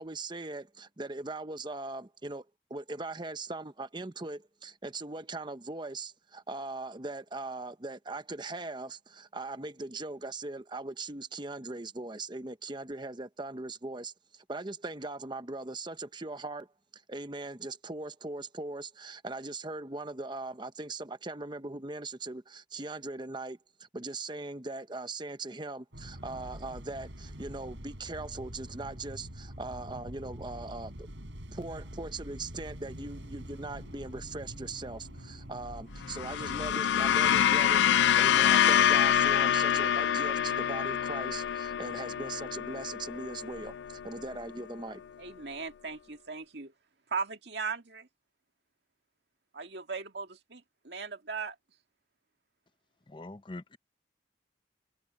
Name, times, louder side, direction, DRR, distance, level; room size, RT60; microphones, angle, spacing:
voice 1, 0.0-31.1 31.5-45.0, right 2 dB, 25° right, 0.9 m, -40 dB
sound 1, 25.9-36.8, equal, 85° right, 6.3 m, -45 dB
sound 2, 32.9-39.2, equal, 60° left, 7.1 m, -60 dB
sound 3, 36.0-44.5, left 9 dB, 75° left, 0.3 m, -26 dB
voice 2, 45.2-46.7 47.1-48.1 49.5-51.6, right 5 dB, 65° right, 2.0 m, -38 dB
voice 3, 53.1-53.8, left 2 dB, 25° left, 0.7 m, -43 dB
head